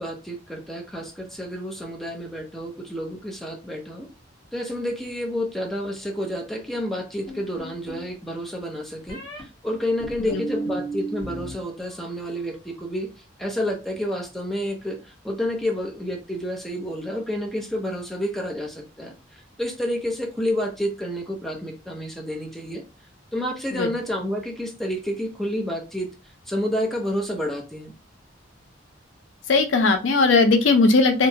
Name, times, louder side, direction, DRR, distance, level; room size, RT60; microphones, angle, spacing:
voice 1, 0.0-4.1 4.5-13.1 13.4-22.8 23.3-26.1 26.5-27.9, equal, ahead, 0 dB, 0.5 m, -29 dB
sound 1, 7.3-8.1 9.1-9.4 10.0-11.5 11.8-12.4, right 2 dB, 20° left, 1.2 m, -34 dB
voice 2, 29.5-31.3, left 3 dB, 75° left, 7 dB, 0.5 m, -18 dB
2.7 x 2.1 x 2.7 m, 0.29 s
head